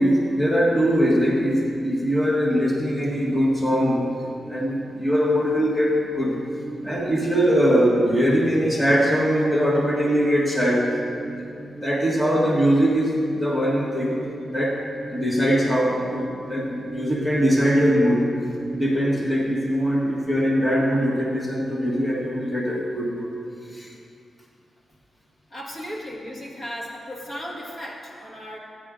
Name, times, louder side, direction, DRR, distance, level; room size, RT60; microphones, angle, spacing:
voice 1, 0.0-4.1 4.5-6.4 6.8-11.0 11.2-11.5 11.8-14.8 15.1-18.3 18.7-23.3 23.7-23.9, equal, 5° left, -3 dB, 1.5 m, -21 dB
sound 1, 3.4-22.6, right 1 dB, 15° right, 3.0 m, -39 dB
voice 2, 25.5-28.6, equal, 35° left, -2 dB, 1.8 m, -35 dB
14.5 x 10.0 x 3.7 m, 2.4 s
wide cardioid pair, 120°, 0 cm